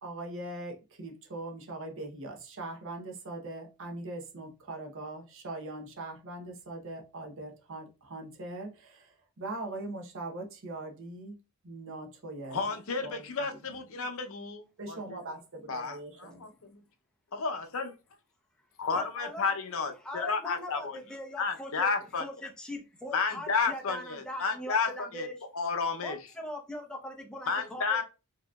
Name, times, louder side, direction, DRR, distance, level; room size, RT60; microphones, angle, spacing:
voice 1, 0.0-11.4 11.6-14.0 14.8-16.5, right 2 dB, 60° right, 0.8 m, -41 dB
voice 2, 12.5-14.6 14.9-15.2 15.7-16.8 17.3-17.9 18.8-21.0 21.4-22.2 23.1-25.3 25.5-26.2 27.5-28.0, left 5 dB, 65° left, 0.6 m, -32 dB
voice 3, 18.9-19.5 20.0-21.9 22.2-25.4 26.0-28.0, left 1 dB, 5° left, 0.7 m, -41 dB
4.9 x 2.9 x 2.3 m
head